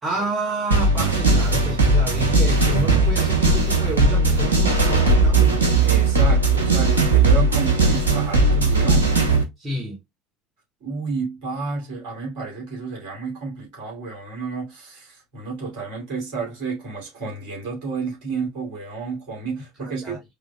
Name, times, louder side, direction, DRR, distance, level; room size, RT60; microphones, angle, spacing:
voice 1, 0.0-5.6 9.6-10.0 19.8-20.2, right 1 dB, 30° right, 1.9 m, -29 dB
sound 1, 0.7-9.4, right 3 dB, 80° right, 1.0 m, -18 dB
voice 2, 5.8-9.2 10.8-20.2, right 4 dB, 60° right, 2.9 m, -31 dB
4.8 x 3.3 x 2.3 m
figure-of-eight pair, 65°, 0 cm